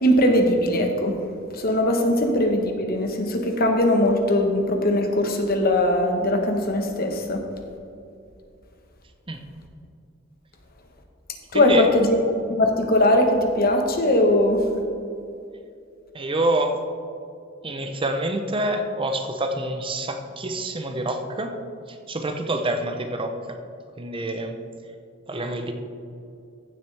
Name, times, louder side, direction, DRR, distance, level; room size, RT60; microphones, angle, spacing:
voice 1, 0.0-1.2 1.5-7.4 11.5-12.2 12.5-14.6, left 1 dB, 50° left, 4 dB, 1.2 m, -20 dB
voice 2, 11.5-11.9 16.1-16.8 17.6-21.6 21.9-23.6 24.0-24.6 25.3-25.7, right 1 dB, 25° right, 5 dB, 0.7 m, -27 dB
15.0 x 7.4 x 3.4 m, 2.5 s
head